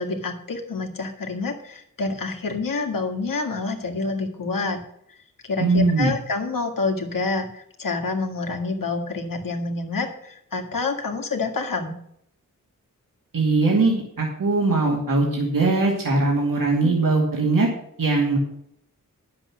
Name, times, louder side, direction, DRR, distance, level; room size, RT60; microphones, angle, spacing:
voice 1, 0.0-4.8 5.4-11.9, left 3 dB, 75° left, 4 dB, 1.9 m, -27 dB
voice 2, 5.6-6.1 13.3-17.7 18.0-18.4, right 3 dB, 80° right, -2 dB, 2.4 m, -20 dB
10.5 x 7.5 x 6.1 m, 0.70 s
wide cardioid pair, 95°, 33 cm